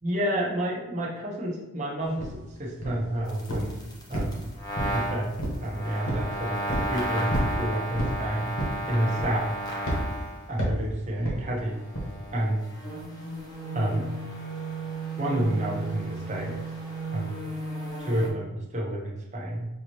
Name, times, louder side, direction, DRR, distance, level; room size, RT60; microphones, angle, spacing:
voice 1, 0.0-2.3 2.6-3.8 4.1-4.4 4.9-5.3 5.6-8.5 8.9-9.5 10.5-11.8 12.3-12.6 13.7-14.0 15.2-16.6 17.1-17.3 18.0-19.7, right 1 dB, 35° right, -3 dB, 0.9 m, -29 dB
sound 1, 2.2-2.3 2.8-3.1 3.5-3.8 4.1-5.0 5.4-5.7 6.1-6.3 6.7-6.9 7.3-7.6 7.9-8.2 8.6-8.8 9.2-9.5 9.9-10.1 10.6-10.8 11.2-11.4 11.9-12.1, equal, 80° left, 1.2 m, -29 dB
sound 2, 3.3-10.5 11.7-18.3, right 1 dB, 20° left, 0.8 m, -34 dB
5.5 x 2.8 x 3.1 m, 1.0 s
head